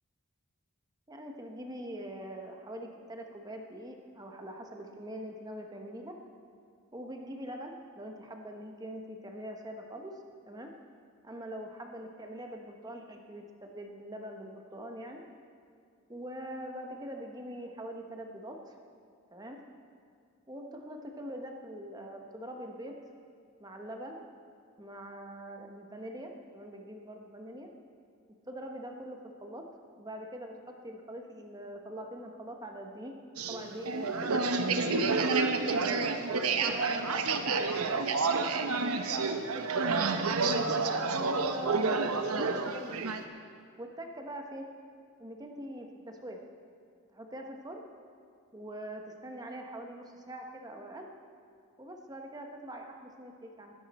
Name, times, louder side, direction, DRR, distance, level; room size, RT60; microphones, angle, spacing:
voice 1, 1.1-6.2 6.9-10.1 10.5-10.7 11.2-15.2 16.1-18.8 19.3-19.6 20.5-23.0 23.6-24.2 24.8-27.7 28.5-29.7 30.0-33.1 33.5-35.2 35.6-35.8 36.5-38.3 39.2-39.6 39.9-43.0 43.8-44.7 45.2-46.4 47.1-47.8 48.5-51.1 51.8-53.7, right 1 dB, 15° right, 3 dB, 1.0 m, -43 dB
sound 1, 33.4-43.2, right 4 dB, 90° right, 0.8 m, -29 dB
20.0 x 10.5 x 4.2 m, 2.2 s
head